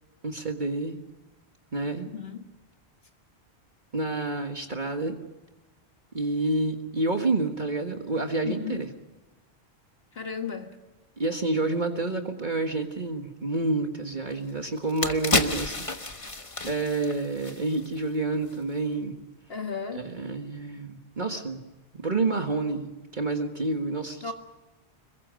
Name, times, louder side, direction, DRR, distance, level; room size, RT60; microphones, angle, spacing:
voice 1, 0.2-1.0 1.7-2.1 3.9-5.2 6.1-8.9 11.2-15.8 16.7-19.2 19.9-21.6 21.9-24.3, right 2 dB, 45° right, 4 dB, 1.6 m, -29 dB
voice 2, 2.1-2.5 8.4-8.8 10.1-10.8 19.5-20.0 24.2-24.3, left 6 dB, 60° left, 5 dB, 1.7 m, -34 dB
sound 1, 14.3-14.4 14.8-18.1 18.4-18.5, left 2 dB, 30° left, 1.4 m, -30 dB
26.5 x 22.5 x 6.4 m, 1.1 s
omnidirectional pair, 1.1 m